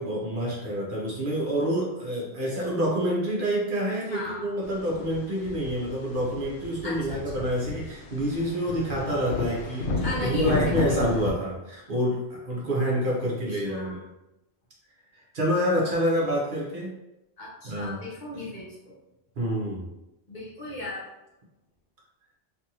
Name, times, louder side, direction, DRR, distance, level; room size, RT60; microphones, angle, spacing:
voice 1, 0.0-9.9 10.2-14.0 15.1-16.9 17.6-18.0 18.3-18.5 19.4-19.9, equal, 55° right, -4 dB, 0.8 m, -27 dB
voice 2, 4.0-4.5 6.8-7.4 9.9-11.0 13.6-14.0 17.4-18.9 20.3-21.0, left 1 dB, 45° left, -6 dB, 0.8 m, -36 dB
sound 1, 4.6-11.3, left 3 dB, 90° left, 0.9 m, -32 dB
2.6 x 2.4 x 2.8 m, 0.93 s
omnidirectional pair, 1.1 m